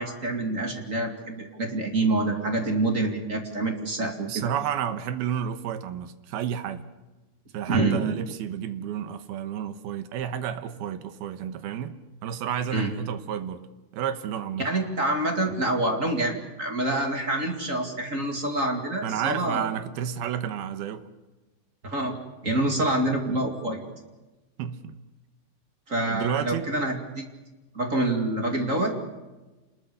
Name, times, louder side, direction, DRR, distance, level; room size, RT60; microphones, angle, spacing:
voice 1, 0.0-4.5 7.7-8.1 12.7-12.9 14.6-19.7 21.8-22.2 22.4-23.8 25.9-27.2 27.7-28.9, right 2 dB, 30° right, 3 dB, 1.5 m, -26 dB
voice 2, 4.3-6.9 7.5-12.0 12.2-13.6 13.9-14.7 19.0-21.1 24.6-25.0 26.1-26.7, right 9 dB, 70° right, 11 dB, 2.7 m, -31 dB
27.0 x 21.0 x 6.9 m, 1.1 s
omnidirectional pair, 5.1 m